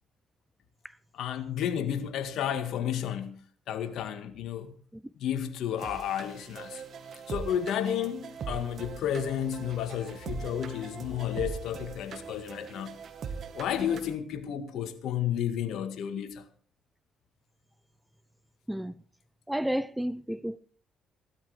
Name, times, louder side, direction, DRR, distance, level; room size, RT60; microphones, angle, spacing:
voice 1, 1.1-3.4 3.7-4.8 5.2-6.8 7.3-12.9 13.5-16.5, left 9 dB, 75° left, 1.9 m, -32 dB
sound 1, 5.8-14.1, right 6 dB, 55° right, 2.1 m, -41 dB
voice 2, 19.5-20.6, equal, 5° right, 0.7 m, -31 dB
16.5 x 12.5 x 5.0 m
supercardioid pair, 75°, 0 cm